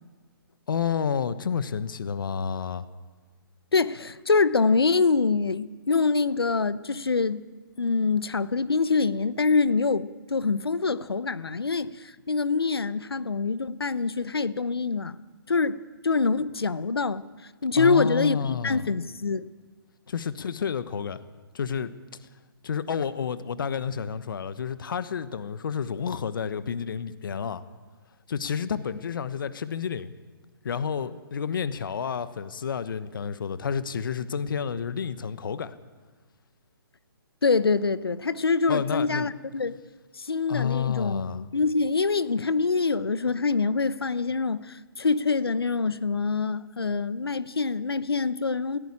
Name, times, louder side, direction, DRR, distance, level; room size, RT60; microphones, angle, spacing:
voice 1, 0.7-2.8 17.7-18.9 20.1-21.2 21.5-21.9 22.6-27.6 28.3-30.1 30.6-35.7 38.7-39.3 40.5-41.4, left 7 dB, 60° left, 1.2 m, -30 dB
voice 2, 3.7-7.5 7.8-15.2 15.5-17.2 17.6-19.5 37.4-39.8 40.1-48.8, left 4 dB, 85° left, 0.9 m, -25 dB
19.0 x 16.5 x 8.8 m
figure-of-eight pair, 140°, 12 cm